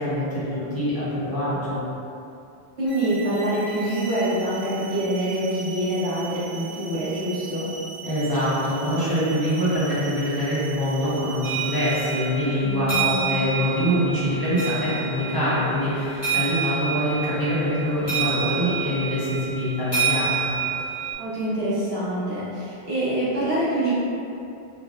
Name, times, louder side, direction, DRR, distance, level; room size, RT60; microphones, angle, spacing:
voice 1, 0.0-1.8 8.0-20.5, equal, 25° left, -13 dB, 0.8 m, -24 dB
voice 2, 2.8-7.7 12.6-13.3 21.2-23.9, right 1 dB, 85° right, -11 dB, 1.3 m, -25 dB
sound 1, 2.9-12.4, right 4 dB, 65° right, 1.0 m, -39 dB
sound 2, 11.4-21.1, right 6 dB, 60° left, 1.5 m, -28 dB
3.9 x 2.2 x 2.4 m, 2.6 s
omnidirectional pair, 1.0 m